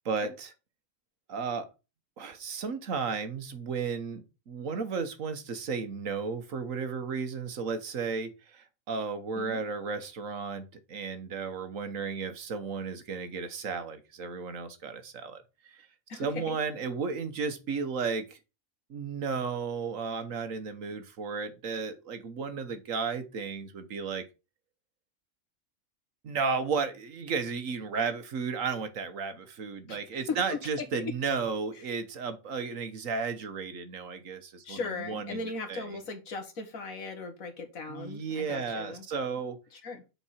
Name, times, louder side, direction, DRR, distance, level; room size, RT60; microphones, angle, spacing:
voice 1, 0.0-0.5 1.3-1.7 2.2-15.8 16.2-18.4 18.9-24.2 26.2-36.0 37.9-39.6, right 5 dB, 70° right, 9 dB, 1.4 m, -34 dB
voice 2, 16.1-16.6 29.9-30.0 30.3-31.1 34.6-39.0 39.7-40.0, left 4 dB, 75° left, 6 dB, 2.0 m, -38 dB
7.1 x 4.7 x 5.7 m, 0.29 s
omnidirectional pair, 1.5 m